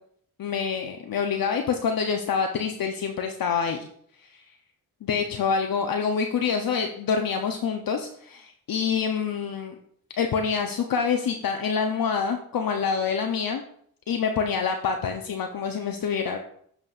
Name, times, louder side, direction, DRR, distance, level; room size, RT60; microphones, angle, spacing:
voice 1, 0.4-3.9 4.2-4.4 5.0-9.7 10.2-13.6 14.1-16.4, left 6 dB, 60° left, 4 dB, 0.7 m, -26 dB
7.7 x 6.0 x 2.4 m, 0.66 s
supercardioid pair, 40°, 39 cm